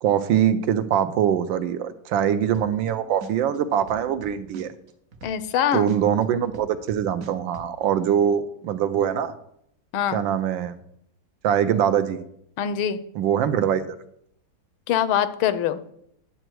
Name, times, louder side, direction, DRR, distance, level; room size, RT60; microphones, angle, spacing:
voice 1, 0.0-4.7 5.7-9.3 10.1-10.8 11.4-12.2 13.1-14.0, right 9 dB, 75° right, 11 dB, 1.2 m, -23 dB
sound 1, 2.5-2.9 3.2-5.6 5.9-7.7, right 4 dB, 55° right, 1.0 m, -41 dB
voice 2, 5.2-5.9 9.9-10.2 12.6-13.0 14.9-15.8, left 9 dB, 85° left, 13 dB, 1.5 m, -23 dB
9.9 x 7.6 x 4.6 m, 0.72 s
omnidirectional pair, 2.3 m